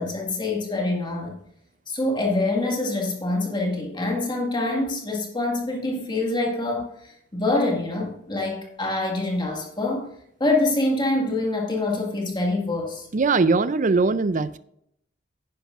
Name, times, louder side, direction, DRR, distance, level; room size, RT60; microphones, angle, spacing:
voice 1, 0.0-1.4 1.9-10.1 10.4-13.1, left 2 dB, 25° left, 2.0 m, -25 dB
voice 2, 13.1-14.6, right 4 dB, 45° right, 0.5 m, -20 dB
10.5 x 10.0 x 2.5 m
head